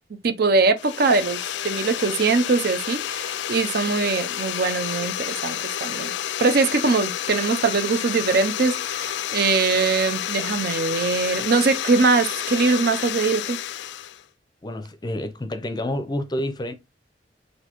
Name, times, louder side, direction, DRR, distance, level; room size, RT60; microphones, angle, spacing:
voice 1, 0.2-1.4 1.6-13.6, right 4 dB, 60° right, 0.6 m, -22 dB
sound 1, 0.8-14.2, left 11 dB, 70° left, 0.3 m, -30 dB
voice 2, 14.6-16.7, left 1 dB, 25° left, 0.5 m, -29 dB
6.2 x 2.6 x 2.9 m
head